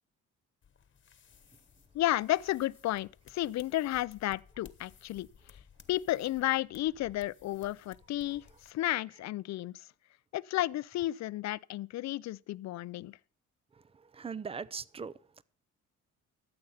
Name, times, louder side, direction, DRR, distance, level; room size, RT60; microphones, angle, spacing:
sound 1, 0.6-8.7, left 7 dB, 40° left, 1.2 m, -59 dB
voice 1, 1.9-5.3 5.9-9.9 10.3-13.2, left 15 dB, 65° left, 0.5 m, -32 dB
voice 2, 14.1-15.4, right 6 dB, 20° right, 0.5 m, -40 dB
13.5 x 7.9 x 5.6 m
cardioid pair, 90°, 30 cm